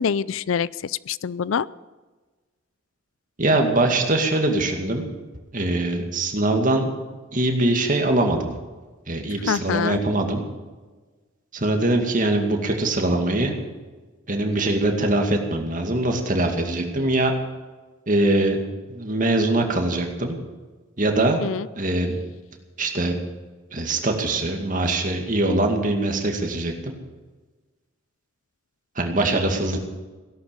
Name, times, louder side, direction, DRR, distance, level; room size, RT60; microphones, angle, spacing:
voice 1, 0.0-1.7 9.5-10.0 21.2-21.7, left 6 dB, 75° left, 20 dB, 0.4 m, -25 dB
voice 2, 3.4-5.0 5.5-6.9 7.3-8.5 9.1-10.4 11.5-13.6 14.3-17.3 18.1-18.6 18.9-20.4 21.0-21.4 21.8-22.2 22.8-23.2 23.7-26.9 29.0-29.8, right 2 dB, 40° right, 3 dB, 2.3 m, -22 dB
17.0 x 11.5 x 7.3 m, 1.3 s
head